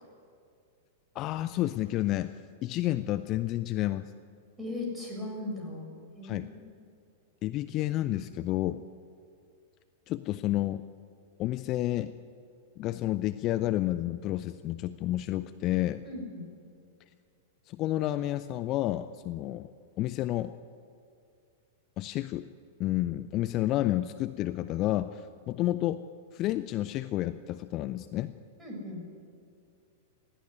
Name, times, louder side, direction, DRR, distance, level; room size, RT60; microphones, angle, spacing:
voice 1, 1.1-2.3 2.6-4.1 6.2-6.5 7.4-8.8 10.1-10.8 11.4-12.1 12.8-16.0 17.7-19.7 20.0-20.5 22.0-22.5 22.8-26.0 26.3-28.3, left 15 dB, 35° left, 12 dB, 0.5 m, -30 dB
voice 2, 4.6-6.6 16.0-16.5 28.6-29.0, left 2 dB, 10° right, -1 dB, 7.1 m, -38 dB
20.0 x 14.5 x 9.7 m, 2.4 s
figure-of-eight pair, 95°, 0 cm